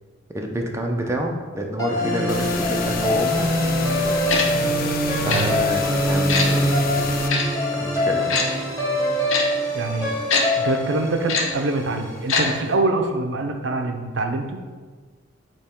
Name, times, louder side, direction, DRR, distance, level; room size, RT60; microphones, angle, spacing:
voice 1, 0.3-3.4 5.1-6.9 7.2-7.4 7.7-8.5, right 1 dB, 15° right, 1 dB, 0.6 m, -28 dB
sound 1, 1.8-12.1, equal, 15° left, 1.2 m, -23 dB
sound 2, 2.3-7.3, left 6 dB, 45° left, 0.3 m, -31 dB
Tick-tock, 4.3-4.4 5.3-5.4 6.3-6.5 7.3-7.4 8.3-8.4 9.3-9.4 10.3-10.4 11.3-11.4 12.3-12.4 12.7-12.8, left 4 dB, 75° left, 0.8 m, -21 dB
voice 2, 9.7-10.1 10.6-14.6, right 2 dB, 60° right, 5 dB, 0.6 m, -24 dB
8.8 x 3.0 x 3.6 m, 1.5 s
head